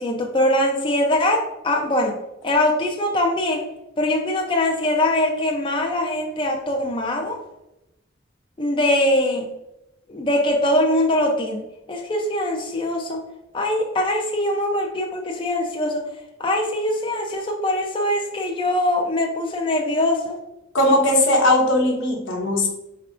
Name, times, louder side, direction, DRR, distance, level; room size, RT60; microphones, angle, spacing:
voice 1, 0.0-2.1 2.4-3.6 4.0-7.4 8.6-9.5 10.1-11.6 11.9-13.2 13.5-16.0 16.4-20.4, left 1 dB, 25° left, 1 dB, 0.4 m, -22 dB
voice 2, 20.7-22.7, left 1 dB, 80° left, 0 dB, 1.0 m, -18 dB
4.6 x 3.5 x 2.4 m, 0.91 s
head